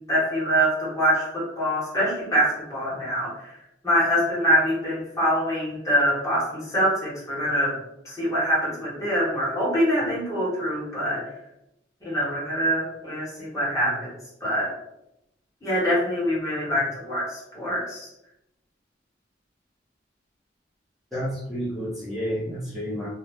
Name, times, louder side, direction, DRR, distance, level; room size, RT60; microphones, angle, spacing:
voice 1, 0.1-3.5 3.8-7.7 8.0-11.2 12.0-14.1 14.4-14.7 15.6-18.1, equal, 15° left, -8 dB, 1.2 m, -24 dB
voice 2, 21.1-23.1, equal, ahead, -12 dB, 0.8 m, -30 dB
2.8 x 2.1 x 3.4 m, 0.84 s
head